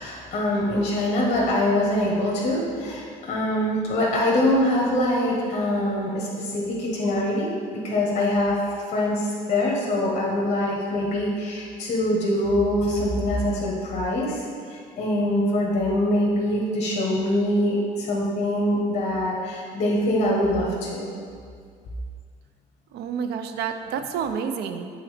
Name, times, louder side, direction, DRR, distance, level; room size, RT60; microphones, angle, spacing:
voice 1, 0.0-8.6 8.9-21.1, left 1 dB, 45° left, -4 dB, 1.5 m, -24 dB
voice 2, 22.9-24.9, right 7 dB, 75° right, 8 dB, 0.6 m, -29 dB
7.9 x 4.1 x 5.1 m, 2.1 s
cardioid pair, 110°, 17 cm